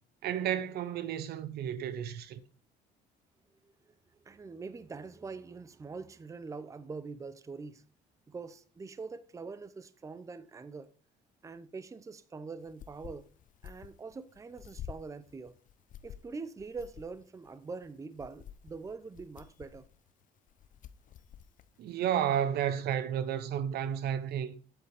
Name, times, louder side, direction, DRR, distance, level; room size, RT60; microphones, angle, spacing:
voice 1, 0.2-2.4 21.8-24.5, right 9 dB, 70° right, 0.8 m, -32 dB
voice 2, 4.2-7.8 8.3-10.9 11.4-13.3 13.6-15.6 16.0-19.9, right 4 dB, 20° right, 0.6 m, -44 dB
sound 1, 12.6-22.4, left 9 dB, 50° left, 0.7 m, -50 dB
8.9 x 8.2 x 3.5 m
cardioid pair, 110°, 17 cm